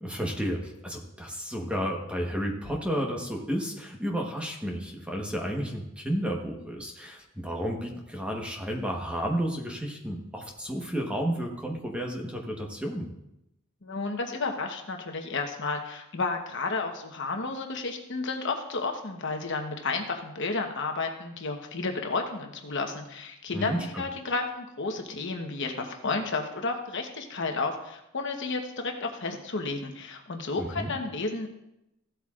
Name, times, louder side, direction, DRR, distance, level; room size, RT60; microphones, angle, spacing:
voice 1, 0.0-13.1 23.5-24.0 30.6-30.9, equal, 5° right, 0 dB, 1.1 m, -32 dB
voice 2, 13.8-31.5, left 3 dB, 60° left, 4 dB, 1.0 m, -32 dB
15.5 x 8.1 x 2.4 m, 0.86 s
head